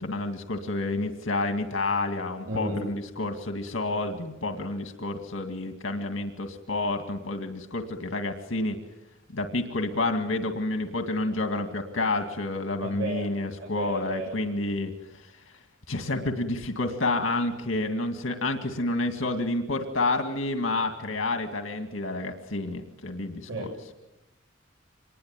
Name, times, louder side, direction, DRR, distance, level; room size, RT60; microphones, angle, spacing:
voice 1, 0.0-8.8 9.3-15.3 15.9-23.9, left 2 dB, 75° left, 6 dB, 2.2 m, -29 dB
voice 2, 2.5-2.8 12.8-13.3 13.6-14.3 23.5-23.7, right 2 dB, 70° right, -3 dB, 7.1 m, -33 dB
26.0 x 21.0 x 9.0 m, 0.95 s
head